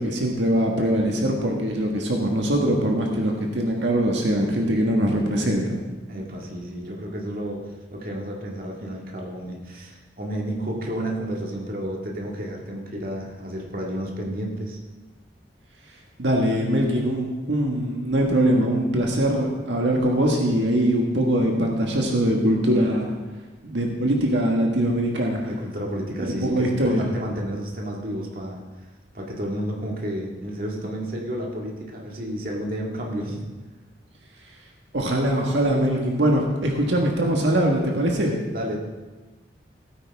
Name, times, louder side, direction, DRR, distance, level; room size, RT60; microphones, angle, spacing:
voice 1, 0.0-5.8 16.2-23.1 23.6-25.5 26.4-27.0 34.9-38.3, right 1 dB, 85° right, 0 dB, 1.6 m, -22 dB
voice 2, 6.1-14.8 25.5-28.6 29.1-33.4 36.7-36.9 38.5-38.8, right 1 dB, 50° right, -1 dB, 1.9 m, -31 dB
16.5 x 9.3 x 3.5 m, 1.2 s
head